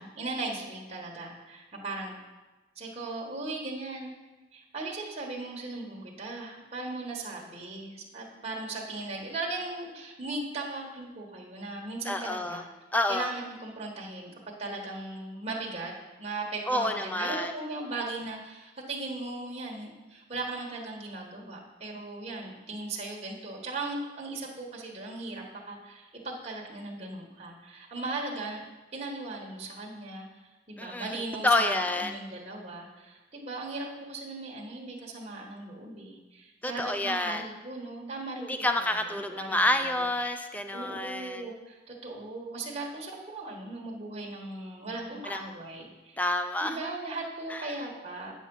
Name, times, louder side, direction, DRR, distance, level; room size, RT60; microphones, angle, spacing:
voice 1, 0.0-2.1 2.7-4.1 4.5-12.6 13.1-15.9 16.2-28.6 28.9-30.3 30.7-38.5 38.7-40.0 40.7-46.2 46.6-48.3, right 2 dB, 30° right, -2 dB, 1.4 m, -38 dB
voice 2, 12.1-12.6 12.9-13.3 16.7-17.5 30.8-32.1 36.6-37.4 38.4-41.5 45.2-45.4 46.2-46.9 47.5-47.7, left 1 dB, 10° left, 7 dB, 0.4 m, -29 dB
9.0 x 5.9 x 5.4 m, 1.2 s
head